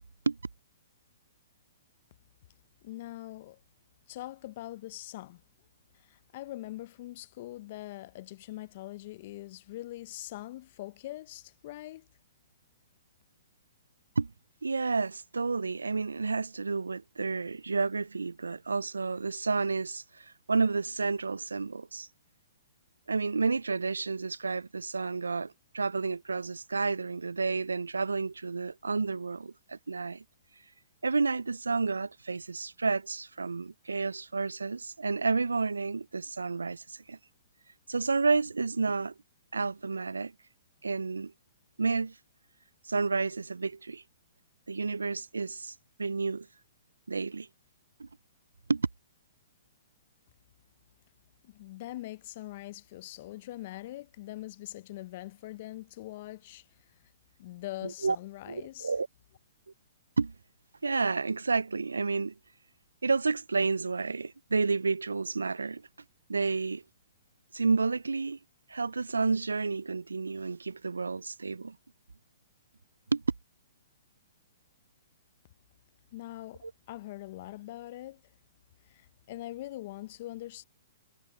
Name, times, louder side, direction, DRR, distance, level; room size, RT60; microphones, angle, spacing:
voice 1, 2.8-3.6 4.1-5.4 5.9-12.1 51.4-56.7 57.4-58.9 76.1-78.2 78.8-80.6, left 16 dB, 50° left, 0.8 m, -42 dB
voice 2, 14.6-22.1 23.1-30.2 31.0-37.2 37.9-39.1 39.5-40.3 40.8-41.3 41.8-42.1 42.8-44.0 44.7-46.5 47.1-47.5 48.0-48.1 48.7-48.9 57.8-58.2 58.5-59.1 60.2-60.3 60.8-62.3 63.0-65.8 66.3-66.8 67.5-68.4 68.7-71.8 73.1-73.2 76.6-76.7, right 4 dB, 90° right, 0.4 m, -30 dB
hypercardioid pair, 130°, 0 cm